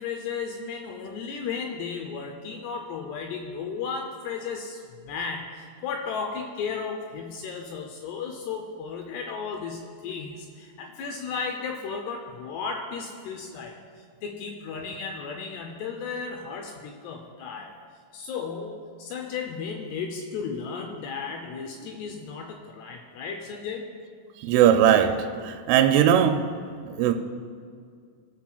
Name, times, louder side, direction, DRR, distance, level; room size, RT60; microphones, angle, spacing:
voice 1, 0.0-13.8 14.2-17.8 18.1-23.9, left 5 dB, 85° left, 3 dB, 2.3 m, -34 dB
voice 2, 24.4-25.2 25.4-26.4 26.9-27.1, right 10 dB, 85° right, 5 dB, 3.0 m, -19 dB
21.0 x 7.3 x 2.3 m, 2.1 s
omnidirectional pair, 5.5 m